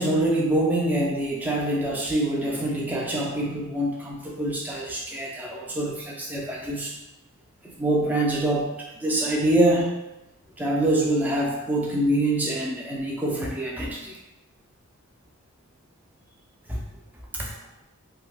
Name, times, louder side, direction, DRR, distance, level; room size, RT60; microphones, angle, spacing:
voice 1, 0.0-6.9 7.8-8.7 9.0-9.9 10.6-14.2 16.7-16.8 17.3-17.5, right 1 dB, 10° right, -3 dB, 0.4 m, -25 dB
2.7 x 2.2 x 3.4 m, 0.92 s
head